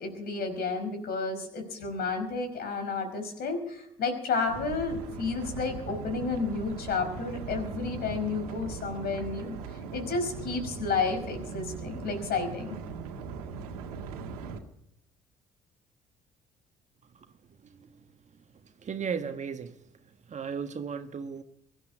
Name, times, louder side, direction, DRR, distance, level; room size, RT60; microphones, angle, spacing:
voice 1, 0.0-12.8, left 4 dB, 55° left, 5.1 m, -31 dB
sound 1, 4.5-14.6, right 5 dB, 80° right, 1.9 m, -39 dB
voice 2, 17.6-18.0 18.6-19.8 20.3-21.4, right 6 dB, 40° right, 1.6 m, -36 dB
23.0 x 11.5 x 5.0 m
hypercardioid pair, 55°, 19 cm